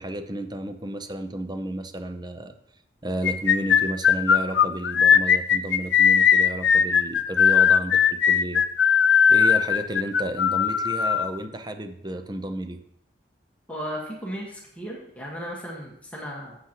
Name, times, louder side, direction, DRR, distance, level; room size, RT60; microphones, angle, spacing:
voice 1, 0.0-2.5 3.0-8.6 9.3-12.8, right 1 dB, 25° right, 8 dB, 0.7 m, -32 dB
sound 1, 3.2-11.3, left 7 dB, 85° left, 0.5 m, -18 dB
voice 2, 13.7-16.6, equal, 10° left, -3 dB, 1.5 m, -35 dB
11.5 x 7.8 x 3.0 m, 0.72 s
head